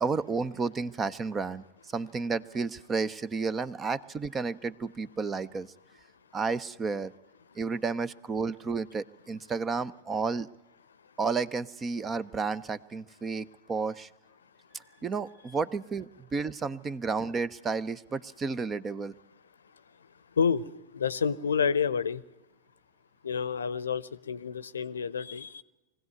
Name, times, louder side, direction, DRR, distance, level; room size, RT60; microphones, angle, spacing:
voice 1, 0.0-1.6 1.9-5.7 6.3-7.1 7.6-10.5 11.2-14.1 15.0-19.1, right 4 dB, 20° right, 20 dB, 0.7 m, -31 dB
voice 2, 20.4-22.2 23.2-25.6, left 6 dB, 70° left, 19 dB, 0.7 m, -29 dB
23.0 x 16.5 x 9.4 m, 1.0 s
figure-of-eight pair, 90°, 0 cm